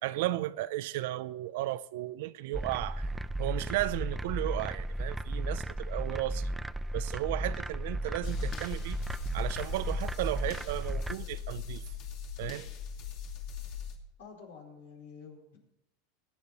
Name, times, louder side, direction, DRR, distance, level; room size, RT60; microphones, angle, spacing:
voice 1, 0.0-3.1 3.4-6.5 6.9-9.0 9.3-11.8 12.4-12.7, right 16 dB, 70° right, 0.5 m, -34 dB
sound 1, 2.5-11.1, right 1 dB, 5° right, 0.4 m, -35 dB
sound 2, 8.2-14.0, left 8 dB, 55° left, 2.6 m, -40 dB
voice 2, 14.2-15.6, left 5 dB, 85° left, 4.5 m, -49 dB
21.0 x 9.3 x 4.1 m
supercardioid pair, 135°, 0 cm